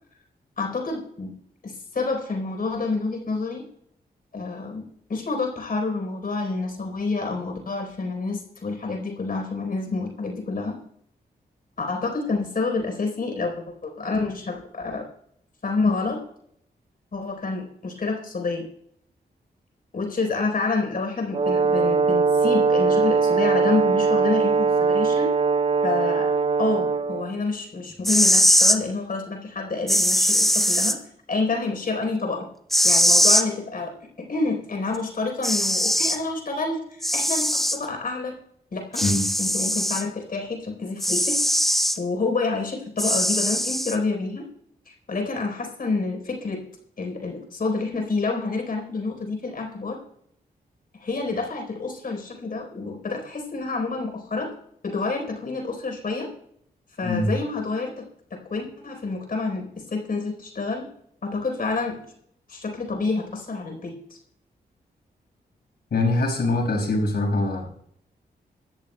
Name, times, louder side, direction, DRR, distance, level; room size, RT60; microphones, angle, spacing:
voice 1, 0.6-1.3 1.6-3.6 4.3-10.8 11.8-13.5 13.8-15.0 15.6-16.2 17.1-18.7 19.9-25.3 25.8-26.3 26.6-31.0 31.3-32.5 32.8-33.9 34.2-38.3 38.7-39.0 39.4-41.4 42.0-44.5 44.9-46.6 47.0-50.0 51.0-54.5 54.8-56.3 57.0-60.9 61.2-62.1 62.5-64.2, left 3 dB, 60° left, 2 dB, 4.1 m, -28 dB
Brass instrument, 21.3-27.3, right 4 dB, 35° right, 0.4 m, -21 dB
sound 1, 27.9-28.8 29.9-31.0 32.7-33.5 34.9-35.0 35.4-36.2 37.0-37.8 38.9-40.0 41.0-42.0 43.0-44.0, equal, ahead, 0.9 m, -20 dB
voice 2, 65.9-67.7, left 2 dB, 75° left, 0 dB, 5.8 m, -23 dB
21.5 x 13.5 x 2.3 m, 0.70 s
cardioid pair, 85°, 17 cm